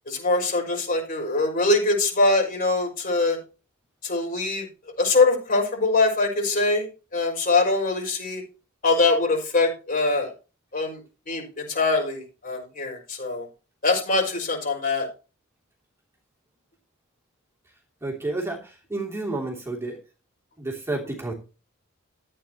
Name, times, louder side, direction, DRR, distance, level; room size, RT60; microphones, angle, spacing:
voice 1, 0.1-3.4 4.0-4.7 5.0-8.4 8.8-10.3 10.7-11.0 11.3-13.5 13.8-15.1, left 3 dB, 45° left, 1 dB, 5.7 m, -23 dB
voice 2, 18.0-20.0 20.6-21.3, right 2 dB, 15° right, -1 dB, 3.0 m, -30 dB
14.0 x 9.0 x 3.0 m, 0.32 s
head